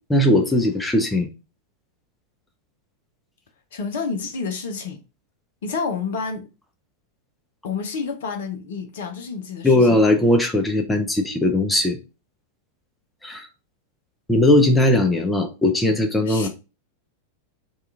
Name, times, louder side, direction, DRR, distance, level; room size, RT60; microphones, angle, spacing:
voice 1, 0.1-1.3 9.6-12.0 13.2-13.5 14.3-16.5, left 1 dB, 10° left, 0.5 m, -18 dB
voice 2, 3.7-5.0 5.6-6.4 7.6-10.0 16.3-16.5, left 5 dB, 55° left, 0.5 m, -29 dB
2.8 x 2.3 x 3.4 m
figure-of-eight pair, 90°, 0 cm